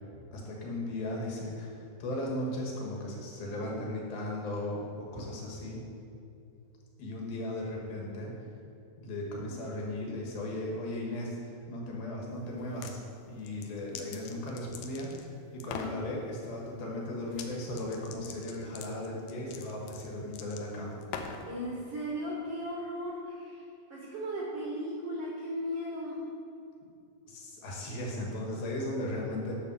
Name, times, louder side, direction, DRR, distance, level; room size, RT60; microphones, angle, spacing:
voice 1, 0.3-5.8 7.0-8.3 9.0-13.0 13.3-21.0 27.3-29.5, left 1 dB, 65° left, -2 dB, 3.4 m, -36 dB
sound 1, 12.6-13.0 13.4-15.3 15.6-16.0 17.3-17.5 17.7-21.5, left 7 dB, 85° left, 1.8 m, -43 dB
voice 2, 21.5-26.2, equal, 75° right, -4 dB, 1.3 m, -37 dB
8.8 x 6.8 x 6.2 m, 2.6 s
omnidirectional pair, 4.7 m